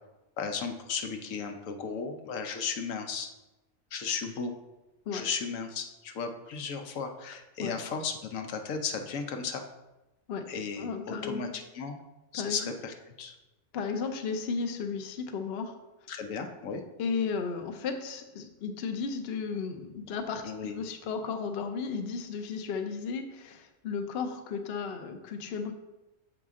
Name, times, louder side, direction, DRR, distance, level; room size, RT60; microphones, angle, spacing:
voice 1, 0.4-3.3 3.9-4.5 5.1-9.6 10.5-12.0 12.3-13.3 16.1-16.8 20.4-20.8, left 5 dB, 80° left, 5 dB, 1.1 m, -35 dB
voice 2, 10.8-11.6 12.3-12.7 13.7-15.8 17.0-25.7, left 5 dB, 55° left, 6 dB, 0.8 m, -34 dB
7.3 x 4.9 x 3.6 m, 1.0 s
omnidirectional pair, 1.4 m